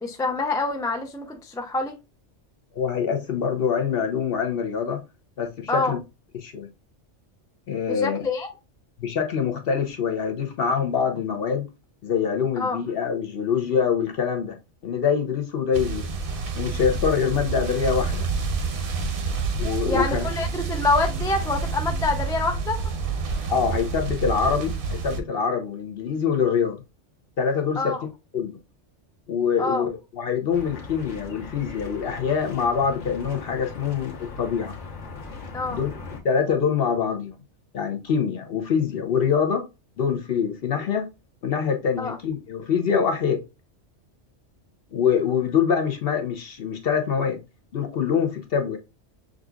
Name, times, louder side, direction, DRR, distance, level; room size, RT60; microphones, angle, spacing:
voice 1, 0.0-2.0 5.7-6.0 7.9-8.5 12.6-12.8 19.9-22.9 27.8-28.0 29.6-29.9 35.5-35.8 42.0-42.2, left 3 dB, 5° left, 0.3 m, -26 dB
voice 2, 2.7-5.0 5.4-6.0 6.3-6.7 7.7-8.2 9.0-11.7 12.0-14.6 14.8-16.0 16.5-18.3 19.6-20.3 23.5-26.8 27.4-28.0 28.3-28.6 29.3-34.7 35.7-35.9 36.2-37.4 37.7-39.6 40.0-41.1 41.4-43.4 44.9-47.4 47.7-48.8, left 6 dB, 55° left, 0.9 m, -24 dB
sound 1, 15.7-25.2, right 4 dB, 55° right, 0.8 m, -28 dB
sound 2, 30.5-36.2, left 3 dB, 75° left, 1.5 m, -39 dB
6.2 x 2.4 x 2.3 m
omnidirectional pair, 1.2 m